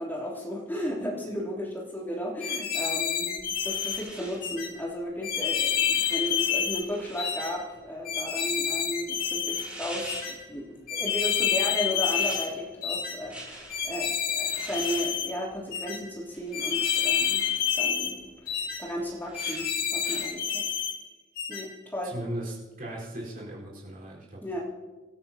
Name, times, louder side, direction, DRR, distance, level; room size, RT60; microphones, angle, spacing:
voice 1, 0.0-3.4 3.6-17.4 17.7-18.2 18.4-20.6 21.5-22.1 24.4-24.6, equal, 10° left, -5 dB, 3.3 m, -34 dB
sound 1, 2.4-4.0 4.4-4.7 5.2-6.8 7.2-7.5 8.1-9.7 10.1-10.3 10.9-12.5 12.8-13.2 13.7-15.3 15.7-16.0 16.5-18.1 18.5-18.8 19.3-20.9 21.4-21.6, left 8 dB, 45° left, 1.9 m, -28 dB
sound 2, 3.3-20.2, right 1 dB, 5° right, 3.1 m, -46 dB
voice 2, 22.0-24.6, right 1 dB, 40° right, -5 dB, 4.7 m, -38 dB
27.5 x 13.0 x 3.0 m, 1.3 s
head